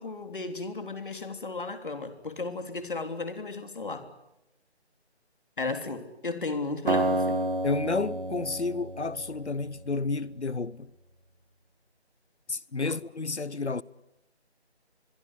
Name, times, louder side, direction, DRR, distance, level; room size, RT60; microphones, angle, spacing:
voice 1, 0.0-4.1 5.6-7.5 12.8-13.0, left 3 dB, 50° left, 3.4 m, -35 dB
Acoustic guitar, 6.9-10.0, right 2 dB, 50° right, 2.2 m, -30 dB
voice 2, 7.6-10.9 12.5-13.8, left 3 dB, 80° left, 1.1 m, -31 dB
24.0 x 23.5 x 9.9 m
figure-of-eight pair, 165°, 33 cm